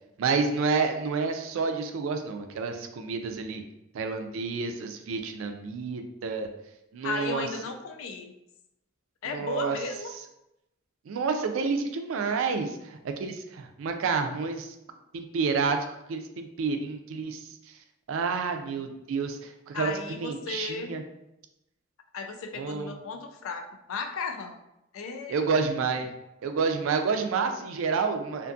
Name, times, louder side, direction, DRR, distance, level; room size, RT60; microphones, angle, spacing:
voice 1, 0.2-3.6 3.9-6.5 6.9-7.5 9.3-9.8 11.1-14.7 15.1-17.5 18.1-21.0 22.5-22.9 25.3-26.1 26.4-28.5, right 5 dB, 75° right, 6 dB, 0.3 m, -29 dB
voice 2, 7.0-8.3 9.2-10.1 19.7-21.0 22.1-24.6 24.9-25.8, left 4 dB, 75° left, 5 dB, 0.3 m, -35 dB
2.5 x 2.3 x 2.5 m, 0.87 s
head